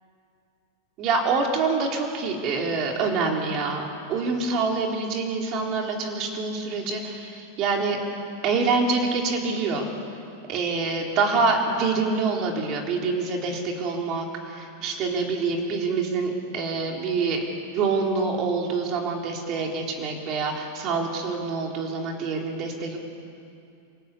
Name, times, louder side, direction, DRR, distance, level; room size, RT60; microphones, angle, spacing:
voice 1, 1.0-8.0 8.4-9.8 10.5-17.5 17.7-23.0, right 4 dB, 35° right, 1 dB, 3.9 m, -26 dB
27.5 x 18.0 x 8.6 m, 2.6 s
supercardioid pair, 150°, 0 cm